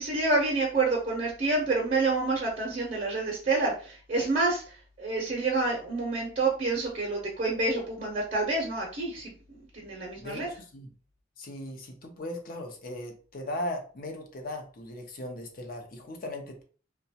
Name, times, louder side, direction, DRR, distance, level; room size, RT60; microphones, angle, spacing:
voice 1, 0.0-10.5, right 3 dB, 40° right, -2 dB, 0.7 m, -28 dB
voice 2, 10.2-10.9 11.4-16.6, left 1 dB, 45° left, 3 dB, 0.6 m, -38 dB
2.9 x 2.2 x 2.7 m, 0.39 s
head